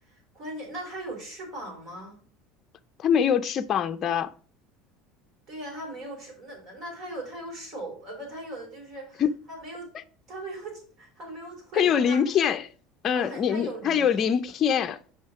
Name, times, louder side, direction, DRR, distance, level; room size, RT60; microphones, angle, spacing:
voice 1, 0.1-2.2 5.5-9.2 9.5-9.9 10.3-12.2 13.1-14.3, right 1 dB, 40° right, 4.7 m, -39 dB
voice 2, 3.0-4.3 9.2-9.3 11.8-12.7 13.0-15.0, left 8 dB, 35° left, 0.6 m, -24 dB
7.9 x 5.1 x 4.8 m
cardioid pair, 140°, 0 cm